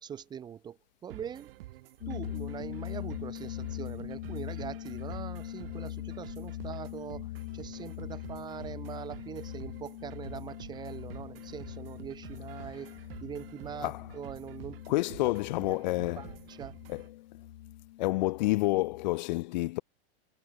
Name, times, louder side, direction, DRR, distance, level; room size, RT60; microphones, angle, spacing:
voice 1, 0.0-1.5 2.1-14.8 16.2-16.8, right 8 dB, 15° right, 0.6 m, -43 dB
sound 1, 1.1-17.1, right 16 dB, 60° right, 3.2 m, -50 dB
sound 2, 2.0-19.1, left 15 dB, 70° left, 0.8 m, -42 dB
voice 2, 14.9-16.3 16.9-17.0 18.0-19.8, left 19 dB, 45° left, 0.4 m, -29 dB
supercardioid pair, 150°, 32 cm